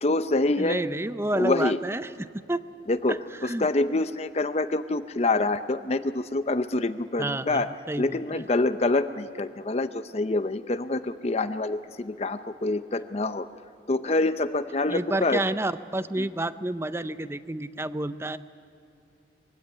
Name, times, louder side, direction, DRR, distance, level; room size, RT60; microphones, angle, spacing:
voice 1, 0.0-0.8 1.3-1.8 2.9-3.2 3.4-7.7 8.0-13.5 13.9-15.4 16.2-16.3, left 2 dB, 35° left, 11 dB, 0.6 m, -26 dB
voice 2, 0.6-2.6 3.1-3.7 7.2-8.4 14.9-18.4, right 1 dB, 15° right, 13 dB, 0.6 m, -30 dB
23.0 x 16.0 x 9.7 m, 2.7 s
head